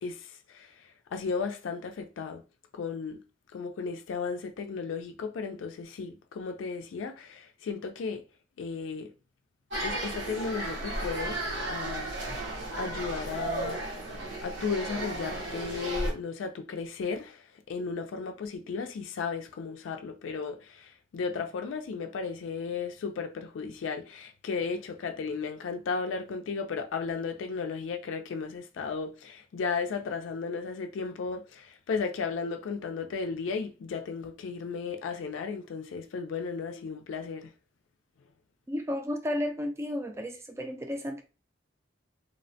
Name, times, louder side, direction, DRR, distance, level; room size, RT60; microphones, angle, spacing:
voice 1, 0.0-2.4 2.7-3.2 3.5-8.2 8.6-9.1 9.8-13.8 14.4-37.5, left 5 dB, 90° left, 0.4 m, -35 dB
sound 1, 9.7-16.1, right 1 dB, 80° right, 1.0 m, -34 dB
voice 2, 38.7-41.2, left 1 dB, 15° right, 0.3 m, -33 dB
2.8 x 2.1 x 2.7 m
head